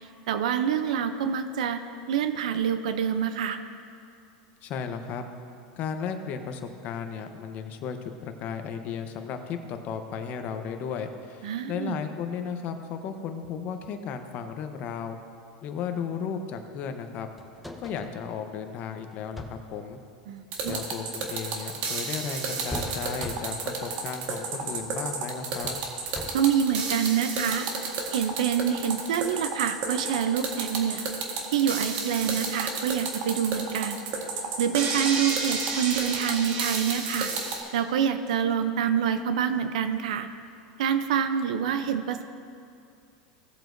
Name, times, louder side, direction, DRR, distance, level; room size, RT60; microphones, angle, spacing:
voice 1, 0.3-1.8 2.1-3.6 11.4-11.9 20.3-20.8 26.3-31.1 31.5-34.0 34.6-37.3 37.7-40.3 40.8-42.2, right 8 dB, 80° right, 9 dB, 0.6 m, -26 dB
voice 2, 4.6-5.3 5.8-15.2 15.6-17.3 17.8-20.0 20.7-25.8, left 6 dB, 45° left, 6 dB, 0.9 m, -34 dB
sound 1, 17.4-18.2 19.1-19.7 20.5-21.3 22.7-23.8 24.6-25.0 25.6-26.6 28.3-28.4, left 1 dB, ahead, 0.8 m, -41 dB
sound 2, 20.5-37.6, right 4 dB, 55° right, 1.6 m, -31 dB
16.5 x 7.6 x 2.6 m, 2.5 s
supercardioid pair, 120°, 4 cm